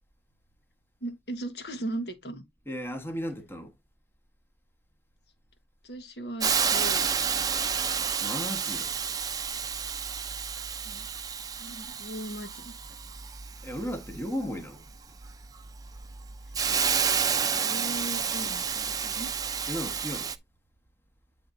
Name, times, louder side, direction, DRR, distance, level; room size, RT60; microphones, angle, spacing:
voice 1, 1.0-2.4 5.8-7.5 7.9-8.0 10.8-11.1 11.6-12.7 17.5-19.3, right 1 dB, 65° left, 1.5 m, -38 dB
voice 2, 2.7-3.7 8.2-8.9 13.6-14.9 19.7-20.3, equal, 15° left, 1.3 m, -35 dB
Hiss, 6.4-20.3, right 6 dB, 20° right, 0.6 m, -30 dB
9.6 x 3.6 x 4.0 m
head